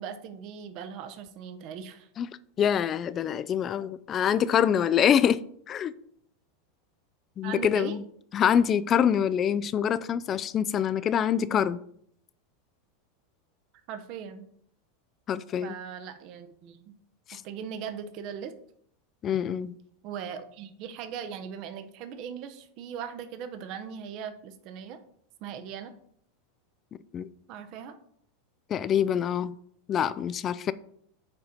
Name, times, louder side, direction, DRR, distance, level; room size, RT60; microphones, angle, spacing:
voice 1, 0.0-2.1 7.4-8.0 13.9-14.5 15.6-17.0 17.3-18.5 20.0-25.0 25.4-25.9 27.5-28.0, right 7 dB, 50° right, 9 dB, 0.8 m, -39 dB
voice 2, 2.6-5.4 5.7-5.9 7.4-8.0 8.3-11.8 15.3-15.8 17.3-17.4 19.2-19.7 27.1-27.3 28.7-29.5 29.9-30.7, left 9 dB, 35° left, 15 dB, 0.4 m, -25 dB
6.7 x 4.3 x 3.9 m, 0.65 s
hypercardioid pair, 95°, 0 cm